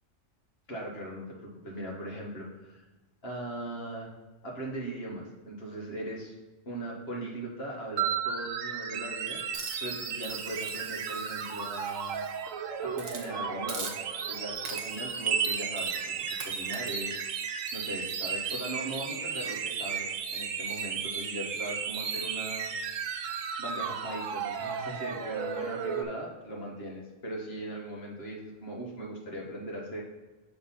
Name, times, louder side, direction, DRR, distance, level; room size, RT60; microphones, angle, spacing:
voice 1, 0.7-2.8 3.2-4.1 4.4-6.3 6.6-12.2 12.8-13.9 14.3-22.7 23.2-23.3 23.6-30.0, right 1 dB, 50° left, -3 dB, 1.6 m, -39 dB
sound 1, 8.0-26.0, right 7 dB, 85° right, 1.0 m, -34 dB
Hiss, 9.5-12.4 12.9-13.3 13.7-14.3 14.6-15.1 15.8-16.0 16.4-16.9, right 4 dB, 65° right, 1.2 m, -43 dB
6.3 x 3.5 x 5.5 m, 1.2 s
omnidirectional pair, 1.3 m